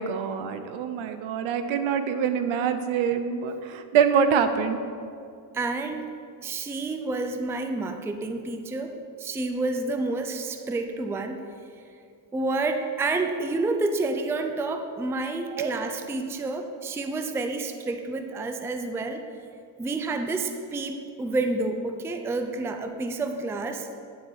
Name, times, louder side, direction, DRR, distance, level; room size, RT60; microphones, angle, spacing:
voice 1, 0.0-4.8 15.6-15.7, right 7 dB, 70° right, 9 dB, 0.8 m, -25 dB
voice 2, 5.5-6.1 6.4-11.5 12.3-19.2 19.8-23.9, right 3 dB, 5° right, 6 dB, 0.4 m, -29 dB
9.6 x 4.2 x 6.5 m, 2.4 s
cardioid pair, 110°, 49 cm